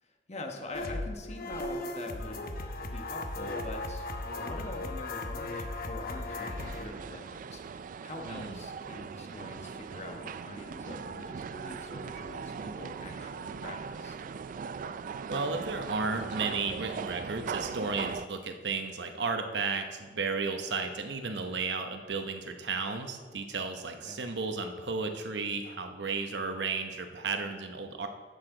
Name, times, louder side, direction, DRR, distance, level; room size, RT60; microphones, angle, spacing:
voice 1, 0.0-2.5 2.8-4.1 4.4-14.1 24.0-24.2, left 2 dB, 40° left, 3 dB, 1.2 m, -44 dB
sound 1, 0.7-6.8, left 2 dB, 55° left, 0.9 m, -37 dB
sound 2, 6.6-18.3, right 6 dB, 50° right, 0.3 m, -39 dB
voice 2, 8.2-8.6 15.2-28.1, right 4 dB, 70° right, 6 dB, 0.9 m, -33 dB
11.0 x 8.1 x 3.8 m, 1.5 s
head